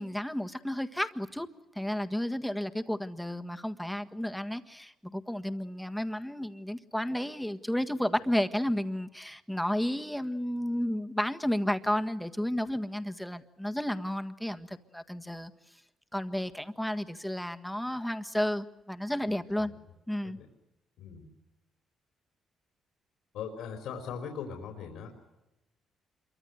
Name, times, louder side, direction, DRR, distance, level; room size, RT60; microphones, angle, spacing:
voice 1, 0.0-1.5 1.7-15.5 16.1-19.7 20.1-20.4, left 1 dB, 5° left, 8 dB, 1.6 m, -32 dB
voice 2, 19.3-19.8 20.2-20.5 21.0-21.3 23.3-25.1, left 7 dB, 85° left, 4 dB, 4.3 m, -40 dB
27.0 x 24.0 x 7.9 m, 0.97 s
cardioid pair, 90°, 0 cm